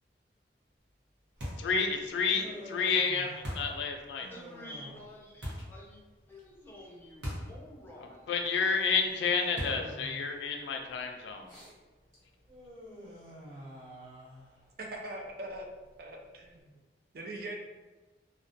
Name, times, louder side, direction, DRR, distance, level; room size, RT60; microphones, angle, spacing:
Human voice, 1.4-16.6, equal, 20° right, 1.1 m, -51 dB
sound 1, 1.4-1.8 3.4-3.8 5.4-5.8 7.2-7.6 7.9-8.0 9.6-10.0, equal, 80° right, 0.8 m, -38 dB
voice 1, 1.6-4.3 8.0-11.5, left 5 dB, 85° left, 4 dB, 0.3 m, -30 dB
voice 2, 4.3-6.0 6.3-8.4, left 1 dB, 10° left, -4 dB, 0.5 m, -49 dB
voice 3, 14.8-15.7 16.0-16.8 17.1-17.6, right 1 dB, 55° right, 1 dB, 0.4 m, -41 dB
2.3 x 2.1 x 2.5 m, 1.2 s
head